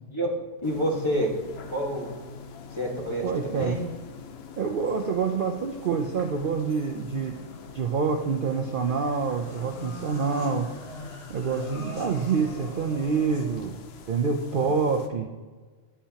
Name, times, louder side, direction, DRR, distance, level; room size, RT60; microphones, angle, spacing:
sound 1, 0.6-15.1, left 6 dB, 60° left, 0.9 m, -45 dB
voice 1, 0.6-1.3 1.7-2.1 2.7-3.9 14.5-14.7, equal, 25° left, -2 dB, 1.5 m, -28 dB
voice 2, 3.2-3.8 4.6-7.4 7.7-10.7 11.3-13.7 14.1-15.3, right 5 dB, 55° right, 3 dB, 0.6 m, -27 dB
sound 2, 4.7-13.7, left 1 dB, 90° left, 1.9 m, -45 dB
9.9 x 8.4 x 2.8 m, 1.4 s
omnidirectional pair, 1.3 m